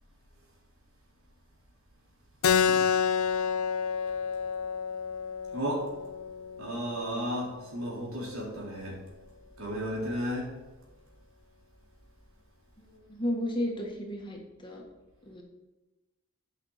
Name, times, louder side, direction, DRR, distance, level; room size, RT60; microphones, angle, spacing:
Keyboard (musical), 2.4-7.5, left 7 dB, 85° left, 0.5 m, -29 dB
voice 1, 5.5-5.9 6.6-9.0 9.6-10.5, equal, 85° right, -3 dB, 3.7 m, -33 dB
voice 2, 12.8-14.8 15.2-15.4, left 1 dB, 25° left, 0 dB, 1.7 m, -33 dB
8.5 x 5.9 x 6.5 m, 1.1 s
head